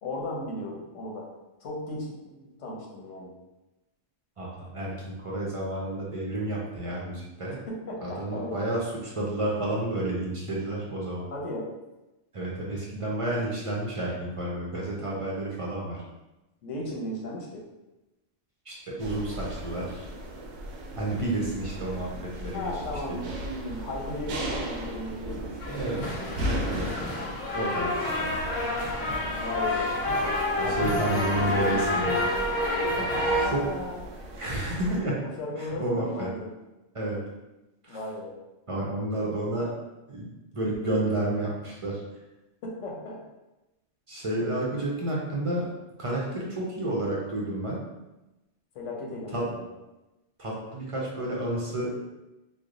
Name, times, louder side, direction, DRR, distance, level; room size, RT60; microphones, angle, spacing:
voice 1, 0.0-1.3 1.6-3.3 7.7-8.6 11.3-11.7 16.6-17.6 22.5-25.8 29.3-29.9 30.6-32.0 32.9-33.9 35.2-36.5 37.9-38.4 42.6-43.2 44.4-44.6 48.7-49.7, left 1 dB, 90° left, -2 dB, 1.1 m, -36 dB
voice 2, 4.4-4.9 5.2-7.6 8.0-11.3 12.3-16.0 18.7-20.1 21.0-22.7 25.7-26.0 26.4-26.9 27.5-28.3 30.6-32.2 33.5-33.6 34.4-35.2 35.6-36.3 36.9-37.2 37.8-38.0 38.7-39.7 40.1-40.3 40.5-42.0 44.1-45.7 46.0-47.8 49.3-49.5 50.4-51.9, right 1 dB, 40° right, -4 dB, 0.5 m, -30 dB
sound 1, 19.0-35.0, equal, 90° right, 0.9 m, -37 dB
sound 2, 25.6-33.5, left 1 dB, 40° left, 0.5 m, -28 dB
3.2 x 2.1 x 3.7 m, 1.0 s
omnidirectional pair, 1.2 m